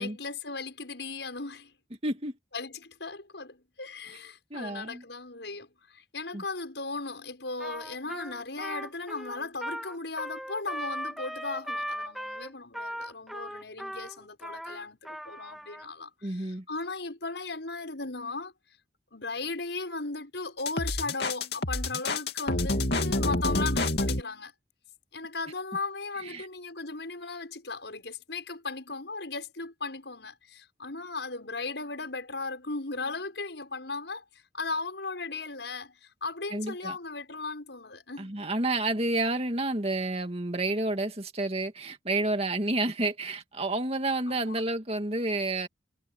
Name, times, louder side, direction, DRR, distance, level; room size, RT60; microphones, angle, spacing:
voice 1, 0.0-1.7 2.5-18.5 19.1-24.5 25.1-34.2 34.5-38.4 44.3-44.6, left 3 dB, 90° left, 6.7 m, -37 dB
voice 2, 2.0-2.3 4.5-5.0 6.3-6.4 16.2-16.6 26.2-26.5 36.5-37.0 38.2-45.7, right 2 dB, 35° right, 2.3 m, -30 dB
Trumpet, 7.6-15.9, equal, ahead, 2.7 m, -38 dB
sound 1, 20.6-24.2, left 2 dB, 65° left, 2.8 m, -28 dB
head